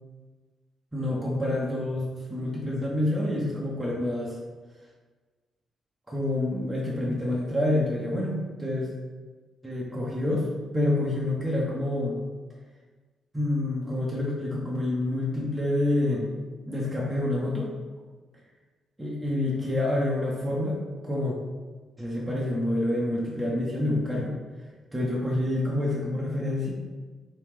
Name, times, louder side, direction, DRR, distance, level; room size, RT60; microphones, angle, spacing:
voice 1, 0.9-4.4 6.1-8.9 9.6-10.5 10.7-12.2 13.3-16.4 16.7-17.7 19.0-20.8 21.0-21.4 22.0-24.3 24.9-26.7, left 1 dB, 15° right, -5 dB, 0.8 m, -27 dB
3.1 x 3.1 x 3.3 m, 1.3 s
hypercardioid pair, 40°, 0 cm